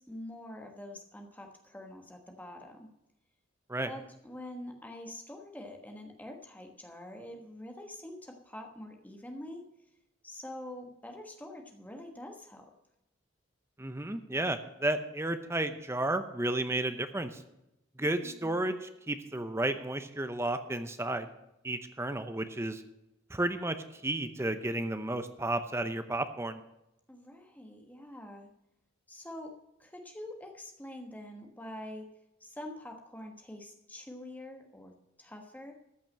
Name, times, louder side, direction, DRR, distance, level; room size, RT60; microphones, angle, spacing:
voice 1, 0.0-2.9 3.9-9.7 10.2-12.7 18.0-18.6 27.1-28.5 29.1-32.1 32.4-35.7, left 1 dB, 10° left, 3 dB, 1.3 m, -45 dB
voice 2, 13.8-17.4 18.0-21.3 21.6-22.8 23.3-26.6, right 1 dB, 15° right, 10 dB, 0.7 m, -32 dB
14.0 x 6.1 x 7.4 m, 0.89 s
head